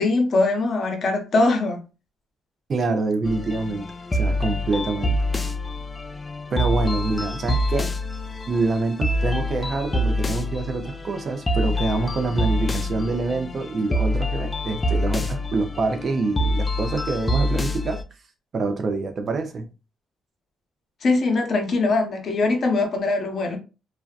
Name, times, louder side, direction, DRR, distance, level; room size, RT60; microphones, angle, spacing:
voice 1, 0.0-1.8 21.0-23.6, left 3 dB, 55° left, 0.7 m, -21 dB
voice 2, 2.7-3.9 4.1-5.2 6.5-7.9 8.5-18.0 18.5-19.7, right 3 dB, 50° right, 0.5 m, -26 dB
sound 1, 3.2-18.0, left 1 dB, 25° left, 0.3 m, -26 dB
2.6 x 2.1 x 2.4 m
cardioid pair, 90°, 0 cm